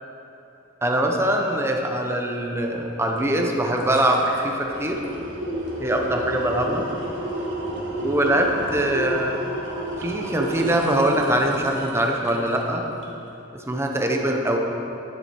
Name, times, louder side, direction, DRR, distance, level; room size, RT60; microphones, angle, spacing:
voice 1, 0.8-5.0 5.8-6.9 8.0-9.5 10.0-12.8 13.7-14.6, right 1 dB, 15° right, 1 dB, 0.8 m, -23 dB
sound 1, 3.2-3.3 3.6-12.7 13.0-13.1, right 1 dB, 65° right, 1.7 m, -31 dB
10.5 x 7.7 x 4.4 m, 2.9 s
head